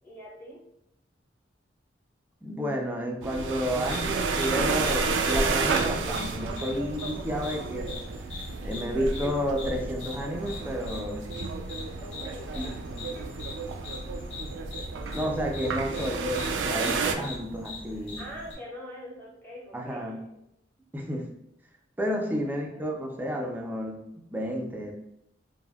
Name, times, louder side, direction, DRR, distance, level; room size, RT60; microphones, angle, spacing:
voice 1, 0.0-0.6 12.0-13.4 17.9-20.2 22.2-22.9, equal, 10° left, -6 dB, 0.8 m, -44 dB
voice 2, 2.4-7.9 8.6-11.3 12.6-13.1 15.1-18.3 19.7-20.2 20.9-21.3 22.0-24.9, equal, 10° right, 1 dB, 0.3 m, -31 dB
sound 1, 3.2-17.2, right 4 dB, 85° right, 0.3 m, -31 dB
sound 2, 3.7-18.5, left 3 dB, 35° left, 0.9 m, -42 dB
3.4 x 2.0 x 2.2 m, 0.80 s
head